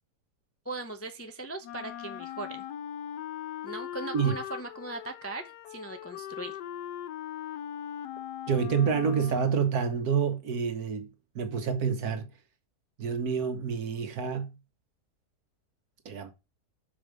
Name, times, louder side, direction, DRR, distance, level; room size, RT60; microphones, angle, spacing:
voice 1, 0.6-2.6 3.6-6.6, right 2 dB, 15° left, 0.5 m, -39 dB
Wind instrument woodwind instrument, 1.6-9.7, left 10 dB, 85° left, 1.2 m, -40 dB
voice 2, 8.5-12.3 13.0-14.6 16.1-16.3, right 6 dB, 70° right, 1.6 m, -28 dB
6.2 x 5.1 x 6.2 m
omnidirectional pair, 1.7 m